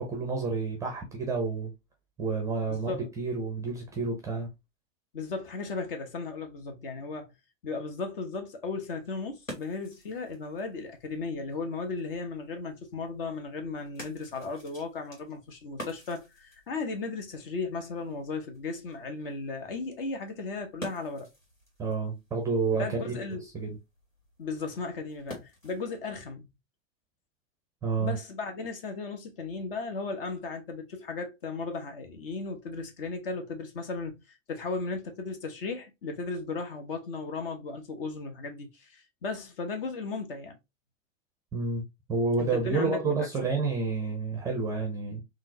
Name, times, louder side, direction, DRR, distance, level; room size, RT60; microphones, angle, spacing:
voice 1, 0.0-1.7 2.2-4.5 21.8-23.3 23.5-23.8 27.8-28.2 41.5-45.2, right 4 dB, 10° right, 0.6 m, -29 dB
voice 2, 2.7-3.1 5.1-7.3 7.6-21.3 22.8-23.4 24.4-26.5 28.0-40.6 42.4-43.3, left 4 dB, 45° left, 0.9 m, -36 dB
sound 1, 8.9-26.0, equal, 90° left, 1.4 m, -50 dB
3.8 x 2.4 x 2.7 m
figure-of-eight pair, 105°, 38 cm